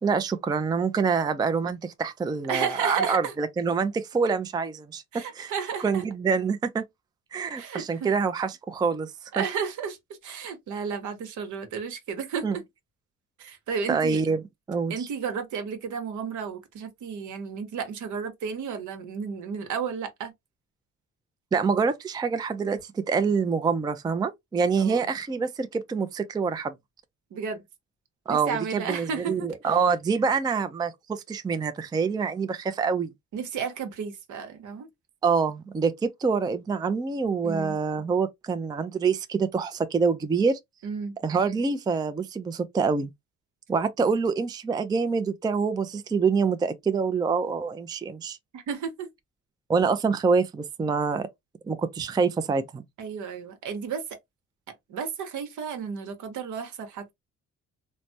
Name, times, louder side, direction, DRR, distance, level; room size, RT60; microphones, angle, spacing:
voice 1, 0.0-5.5 5.8-6.8 7.3-9.1 9.4-9.5 12.4-12.6 13.9-14.4 14.7-15.1 21.5-26.7 28.3-33.1 35.2-40.6 41.2-43.1 43.7-48.4 49.7-51.3 51.7-52.8, right 5 dB, 15° right, 0.3 m, -26 dB
voice 2, 2.5-3.3 5.1-6.0 7.6-8.1 9.3-10.0 10.2-12.6 13.4-14.2 14.9-20.3 24.8-25.1 27.3-27.6 28.3-29.7 33.3-34.9 37.4-37.8 40.8-41.2 48.5-49.1 53.0-54.0 54.9-57.1, right 6 dB, 75° right, 0.9 m, -33 dB
3.2 x 2.1 x 2.6 m
cardioid pair, 90°, 30 cm